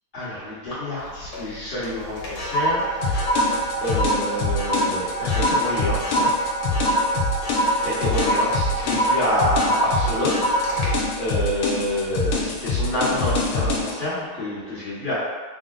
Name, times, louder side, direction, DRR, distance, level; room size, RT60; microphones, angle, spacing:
voice 1, 0.1-3.3 3.8-6.3 7.8-10.9 11.2-15.1, left 1 dB, 30° left, -10 dB, 1.0 m, -27 dB
sound 1, 1.0-1.5 1.8-12.4 12.8-13.1, right 1 dB, 70° left, 1.5 m, -25 dB
sound 2, 3.0-13.9, left 3 dB, 90° left, 1.5 m, -25 dB
3.9 x 2.1 x 3.7 m, 1.4 s
omnidirectional pair, 2.4 m